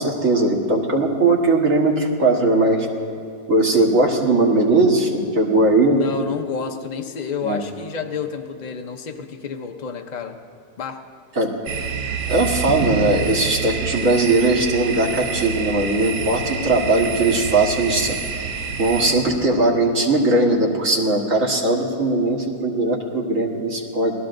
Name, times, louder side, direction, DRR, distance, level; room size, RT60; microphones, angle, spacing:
voice 1, 0.0-2.9 3.5-6.0 7.4-7.6 11.4-11.5 12.3-18.2 18.8-24.1, right 2 dB, 45° right, -1 dB, 1.8 m, -19 dB
voice 2, 5.9-10.4 10.8-11.0, left 6 dB, 85° left, 3 dB, 0.4 m, -30 dB
sound 1, 11.7-19.1, right 6 dB, 65° right, 1.5 m, -27 dB
27.5 x 18.5 x 2.6 m, 2.3 s
omnidirectional pair, 1.9 m